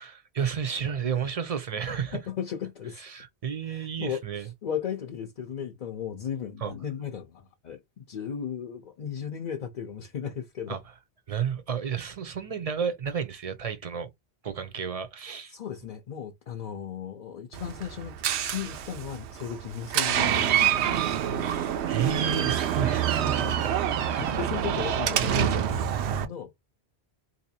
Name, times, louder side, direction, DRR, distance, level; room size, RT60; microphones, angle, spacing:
voice 1, 0.0-2.2 3.0-4.5 6.6-6.7 10.7-10.8 11.3-14.1 14.4-15.5 21.4-24.3, right 7 dB, 45° right, 0.6 m, -32 dB
voice 2, 2.1-3.0 3.7-10.8 15.5-18.1 18.5-21.0 23.3-23.6 24.1-26.5, left 8 dB, 50° left, 0.6 m, -36 dB
Door, 17.5-26.2, right 10 dB, 80° right, 0.9 m, -27 dB
3.8 x 2.8 x 2.7 m
omnidirectional pair, 1.1 m